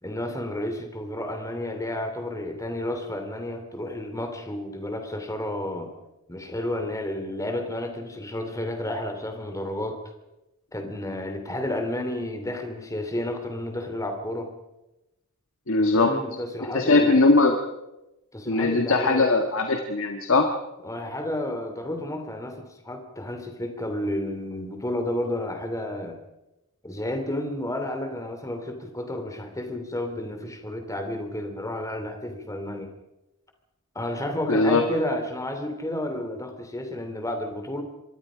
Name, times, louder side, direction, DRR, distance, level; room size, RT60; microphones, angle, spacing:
voice 1, 0.0-5.9 6.3-10.0 10.7-14.5 15.8-17.3 18.3-19.4 20.8-26.2 26.8-32.9 33.9-37.8, left 1 dB, 15° left, 6 dB, 2.8 m, -31 dB
voice 2, 15.7-16.1 16.7-17.5 18.5-20.5 34.5-34.8, left 3 dB, 65° left, 4 dB, 1.6 m, -20 dB
26.0 x 22.0 x 5.1 m, 0.97 s
head